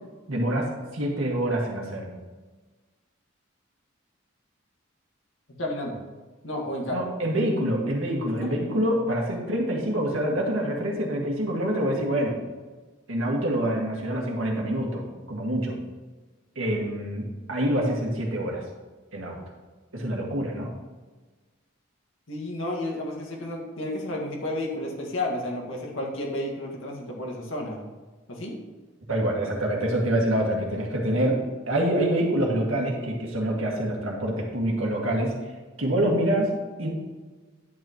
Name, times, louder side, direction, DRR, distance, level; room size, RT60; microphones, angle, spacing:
voice 1, 0.3-2.1 6.9-12.4 13.1-15.8 16.6-18.6 19.1-19.4 19.9-20.7 29.1-35.5 35.8-36.9, right 1 dB, 85° right, -1 dB, 2.0 m, -26 dB
voice 2, 5.6-6.0 6.4-7.0 8.3-8.5 22.3-27.9 28.3-28.6, left 1 dB, 75° left, -1 dB, 1.9 m, -32 dB
10.5 x 8.0 x 3.1 m, 1.3 s
head